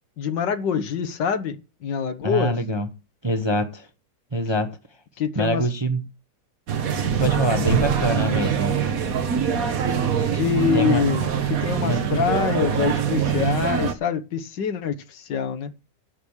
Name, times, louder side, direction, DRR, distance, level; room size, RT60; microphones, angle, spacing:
voice 1, 0.2-2.5 5.2-5.6 7.6-8.0 10.3-15.7, left 7 dB, 75° left, 1.8 m, -25 dB
voice 2, 2.2-2.9 3.2-3.9 4.3-4.8 5.3-6.0 7.2-8.7 10.7-11.0 11.8-12.0, right 1 dB, 20° right, 0.8 m, -24 dB
sound 1, 6.7-13.9, right 8 dB, 55° right, 1.5 m, -23 dB
11.0 x 6.4 x 7.1 m
omnidirectional pair, 1.9 m